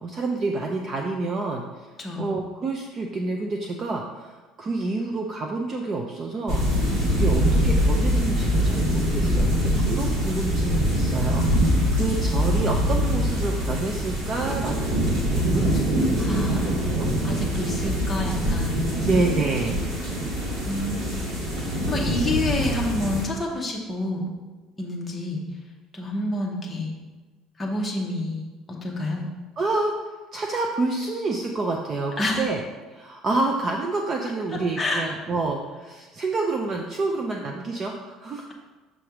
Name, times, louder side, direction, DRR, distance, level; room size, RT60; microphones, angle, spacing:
voice 1, 0.0-1.6 2.2-6.6 6.9-14.9 15.4-17.1 17.6-17.9 19.1-19.8 20.2-20.3 29.6-29.9 30.3-32.6 32.9-38.5, right 3 dB, 25° right, 1 dB, 0.4 m, -28 dB
voice 2, 2.0-2.3 16.2-16.7 17.2-19.0 20.6-24.2 24.8-25.4 25.9-26.9 27.6-28.4 28.7-29.2 32.2-32.4 34.5-35.1, left 2 dB, 10° left, -2 dB, 0.9 m, -28 dB
sound 1, 6.5-23.3, equal, 45° right, 1.8 m, -23 dB
6.2 x 3.3 x 5.8 m, 1.2 s
cardioid pair, 175°, 0 cm